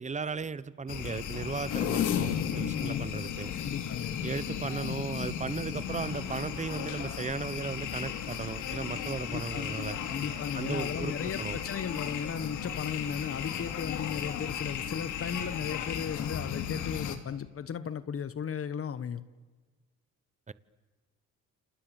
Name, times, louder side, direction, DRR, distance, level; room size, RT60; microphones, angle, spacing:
voice 1, 0.0-3.5 4.2-10.0 10.5-11.6 20.5-20.6, right 5 dB, 25° right, 1.1 m, -36 dB
sound 1, 0.9-17.2, left 8 dB, 80° left, 2.7 m, -35 dB
voice 2, 2.8-3.1 3.6-4.2 9.3-9.8 10.1-19.2, left 7 dB, 50° left, 1.3 m, -36 dB
29.5 x 27.5 x 7.2 m
cardioid pair, 90°, 30 cm